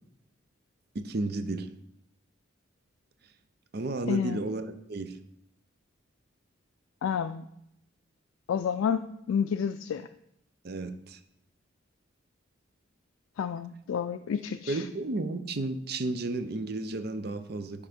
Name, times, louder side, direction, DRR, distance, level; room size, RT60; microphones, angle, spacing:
voice 1, 0.9-1.7 3.7-5.2 10.6-11.2 14.7-17.9, right 2 dB, 50° right, 10 dB, 0.6 m, -33 dB
voice 2, 4.1-4.4 7.0-7.5 8.5-10.1 13.4-14.9, left 7 dB, 85° left, 9 dB, 0.3 m, -30 dB
10.5 x 3.6 x 5.1 m, 0.78 s
head